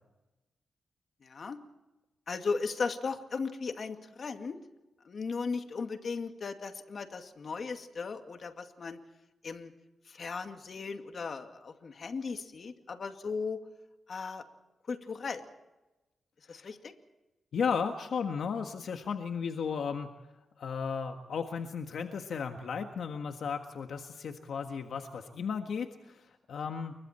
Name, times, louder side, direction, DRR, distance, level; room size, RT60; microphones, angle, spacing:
voice 1, 1.2-1.6 2.3-4.6 5.0-9.0 9.4-9.7 10.1-13.6 14.1-14.4 14.9-15.5 16.5-16.9, left 4 dB, 50° left, 6 dB, 2.2 m, -37 dB
voice 2, 17.5-20.1 20.6-26.9, left 6 dB, 70° left, 5 dB, 1.6 m, -35 dB
29.5 x 23.0 x 4.4 m, 1.0 s
cardioid pair, 100°, 0 cm